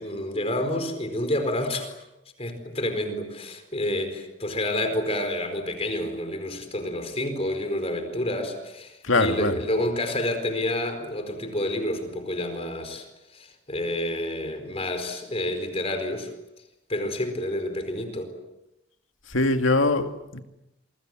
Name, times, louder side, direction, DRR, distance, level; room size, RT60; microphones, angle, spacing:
voice 1, 0.0-1.9 2.4-13.0 13.3-16.3 16.9-18.3, left 1 dB, 30° left, 4.5 m, -29 dB
voice 2, 9.1-9.5 19.3-20.4, left 2 dB, 85° left, 2.3 m, -22 dB
27.5 x 24.5 x 7.7 m
head